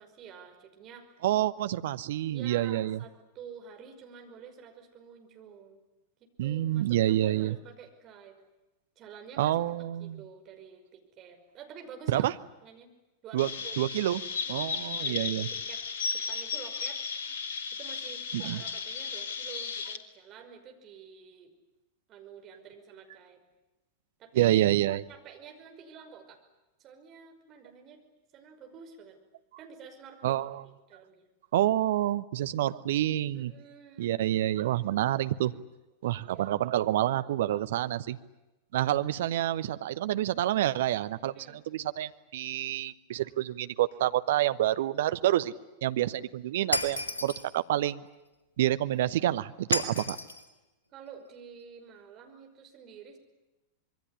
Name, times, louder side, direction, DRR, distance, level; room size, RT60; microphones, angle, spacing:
voice 1, 0.0-1.1 2.3-5.8 6.4-8.4 9.0-12.3 12.6-12.9 13.2-13.8 14.5-14.8 15.0-15.8 16.1-17.0 17.7-21.5 22.1-23.4 24.2-24.6 25.1-26.4 26.8-28.0 28.3-29.2 29.6-30.4 30.9-31.3 33.3-34.2 36.3-36.6 41.3-41.6 50.9-53.2, right 7 dB, 35° right, 4 dB, 5.6 m, -49 dB
voice 2, 1.2-3.0 6.4-7.5 9.4-10.2 12.1-12.3 13.3-13.5 13.8-14.2 14.5-15.5 18.3-18.6 24.3-25.0 30.2-30.6 31.5-33.5 34.0-35.5 36.0-38.2 38.7-45.5 45.8-48.0 48.6-50.2, right 13 dB, 55° right, 13 dB, 1.0 m, -28 dB
Chirp tweet, 13.4-20.0, left 5 dB, 60° left, 1.9 m, -35 dB
Shatter, 46.7-47.5 49.7-50.4, left 1 dB, 75° left, 2.4 m, -31 dB
26.5 x 22.5 x 9.9 m, 1.0 s
figure-of-eight pair, 90°, 0 cm